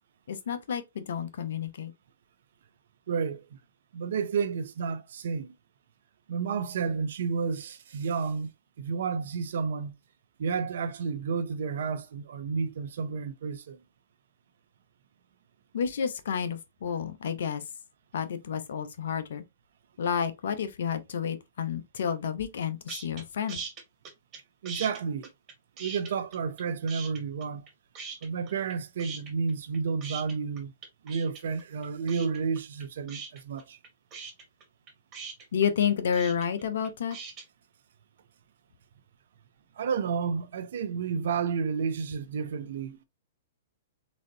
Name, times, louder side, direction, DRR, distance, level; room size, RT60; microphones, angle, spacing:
voice 1, 0.3-1.9 15.7-17.6 18.1-19.4 20.0-23.6 35.5-37.2, left 7 dB, 70° left, 0.9 m, -30 dB
voice 2, 3.1-3.4 3.9-5.5 6.3-8.5 8.8-9.9 10.4-13.8 24.6-25.3 25.8-27.6 28.2-30.7 31.0-33.8 39.8-43.0, right 5 dB, 70° right, 0.6 m, -31 dB
sound 1, 22.9-23.2 23.5-24.4 24.7-26.6 26.9-27.7 28.0-28.7 29.0-37.4, right 5 dB, 30° right, 2.1 m, -41 dB
4.1 x 3.8 x 2.7 m
hypercardioid pair, 125°, 0 cm